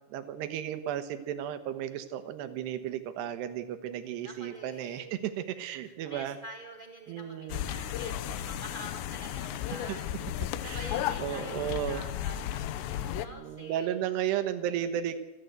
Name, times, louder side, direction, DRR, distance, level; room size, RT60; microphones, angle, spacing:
voice 1, 0.0-6.4 7.1-7.7 9.9-10.0 10.6-10.9 11.2-12.0 13.3-15.2, right 10 dB, 80° right, 11 dB, 3.2 m, -34 dB
voice 2, 4.1-5.1 5.8-10.3 10.6-14.7, equal, 30° right, 3 dB, 0.8 m, -47 dB
sound 1, 7.5-13.3, left 11 dB, 85° left, 3.1 m, -34 dB
27.5 x 12.5 x 8.0 m, 1.1 s
omnidirectional pair, 4.9 m